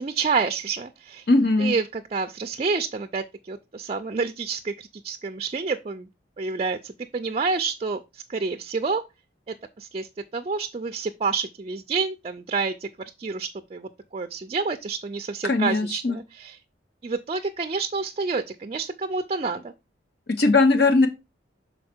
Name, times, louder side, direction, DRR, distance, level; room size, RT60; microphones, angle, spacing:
voice 1, 0.0-1.3 1.6-6.1 6.4-9.0 9.5-12.9 13.2-16.6 17.0-19.7, right 4 dB, 35° right, 0.4 m, -29 dB
voice 2, 1.3-1.7 15.4-16.2 20.4-21.1, left 3 dB, 55° left, 0.7 m, -19 dB
6.4 x 4.1 x 4.3 m
head